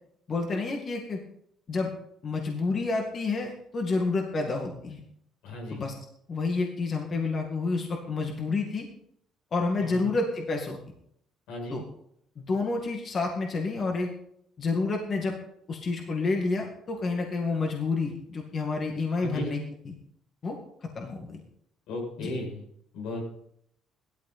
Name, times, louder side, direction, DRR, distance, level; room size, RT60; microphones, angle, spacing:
voice 1, 0.3-1.2 1.7-1.9 2.2-5.0 5.7-5.9 6.3-8.9 9.5-10.8 11.7-11.8 12.4-14.1 14.6-15.3 15.7-20.0 20.4-21.4 22.2-22.3, left 3 dB, 35° left, 1 dB, 2.1 m, -29 dB
voice 2, 5.4-5.9 9.8-10.2 11.5-11.8 19.2-19.5 21.9-22.6 22.9-23.2, equal, 90° left, 0 dB, 7.6 m, -35 dB
16.5 x 13.0 x 4.3 m, 0.71 s
cardioid pair, 135°, 0 cm